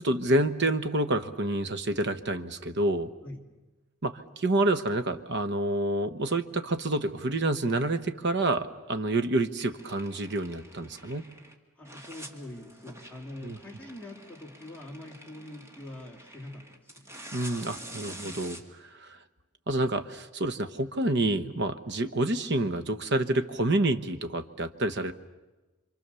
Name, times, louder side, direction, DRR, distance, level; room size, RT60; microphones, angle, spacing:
voice 1, 0.0-3.1 4.0-11.2 13.4-13.6 17.3-19.2 19.7-25.1, right 2 dB, 55° right, 10 dB, 1.2 m, -28 dB
sound 1, 9.7-11.5 11.8-18.6, right 1 dB, 15° right, 2.0 m, -47 dB
voice 2, 11.8-17.2, left 1 dB, 10° left, -1 dB, 3.1 m, -44 dB
27.5 x 25.0 x 7.0 m, 1.1 s
head